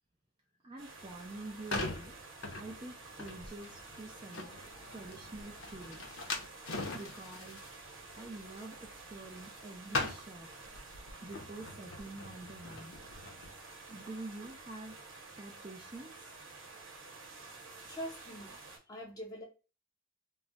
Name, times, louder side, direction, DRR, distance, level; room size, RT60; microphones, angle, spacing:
voice 1, 0.6-2.1 2.5-4.5 4.9-6.3 6.9-7.6 8.1-10.5 11.2-13.0 13.9-14.9 15.4-16.4, right 2 dB, 25° right, -1 dB, 0.4 m, -47 dB
sound 1, 0.8-18.8, right 3 dB, 80° right, 0.9 m, -51 dB
sound 2, 1.2-9.6 9.9-13.5, left 3 dB, 90° left, 0.6 m, -42 dB
voice 2, 17.8-19.4, equal, 20° left, 0 dB, 0.8 m, -45 dB
2.3 x 2.0 x 3.8 m, 0.32 s
head